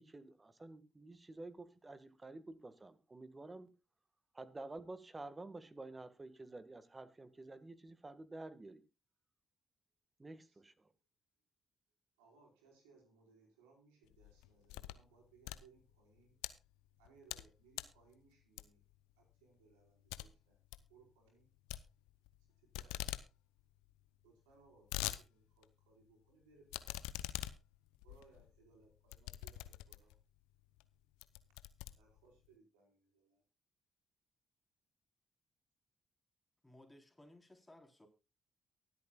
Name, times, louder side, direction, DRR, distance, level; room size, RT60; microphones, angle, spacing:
voice 1, 0.0-3.7 4.3-8.8 10.2-10.9, right 2 dB, 30° right, 1.8 m, -50 dB
voice 2, 12.2-16.4 17.0-18.8 19.2-20.6 20.9-21.5 22.6-23.3 24.2-27.0 28.0-30.2 31.9-33.4, right 4 dB, 90° right, 4.7 m, -67 dB
sound 1, 14.1-15.1 15.4-16.5 17.0-17.5 17.7-18.0 18.6-18.9 19.3-19.4 19.7-19.8 20.1-20.3 20.5-20.9 21.7-22.4 22.7-23.3 23.6-23.7 23.8-23.9 24.5-25.2 25.6-25.7 26.7-30.2 30.8-30.9 31.2-32.5, left 17 dB, 85° left, 0.6 m, -44 dB
voice 3, 36.6-38.1, left 1 dB, 15° left, 4.0 m, -60 dB
23.5 x 8.6 x 2.4 m
hypercardioid pair, 45°, 0 cm